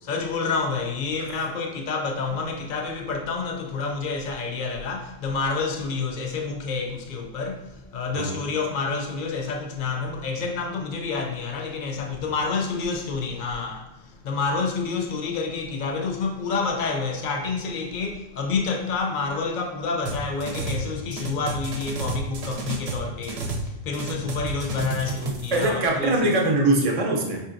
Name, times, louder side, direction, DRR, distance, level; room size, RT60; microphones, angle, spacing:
voice 1, 0.0-26.3, left 4 dB, 55° left, 0.7 m, -28 dB
sound 1, 20.1-20.9 21.1-23.7 23.9-25.7, right 3 dB, 70° right, 0.8 m, -31 dB
voice 2, 25.5-27.4, right 2 dB, 40° right, 0.6 m, -22 dB
5.1 x 2.8 x 2.5 m
omnidirectional pair, 1.1 m